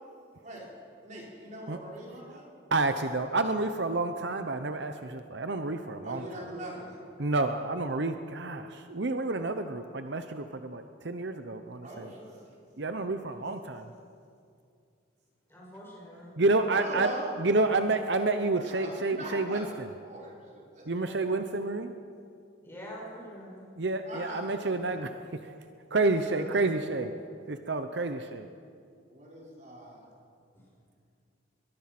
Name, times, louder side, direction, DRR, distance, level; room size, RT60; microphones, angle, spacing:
voice 1, 1.0-2.4 6.0-7.0 11.8-12.5 12.9-13.0 16.7-17.3 17.7-17.8 18.5-19.7 20.0-20.9 24.0-25.0 26.2-26.6 29.1-30.1, right 1 dB, 40° right, -3 dB, 5.1 m, -41 dB
voice 2, 2.7-6.3 7.2-12.1 12.8-13.9 16.4-17.1 17.4-19.9 20.9-21.9 23.8-25.1 25.4-25.5 25.9-27.1 27.5-28.5, right 2 dB, 60° right, 8 dB, 0.8 m, -29 dB
voice 3, 15.5-16.3 20.8-21.2 22.6-23.6, equal, 10° left, -5 dB, 6.8 m, -45 dB
22.0 x 21.5 x 6.0 m, 2.4 s
head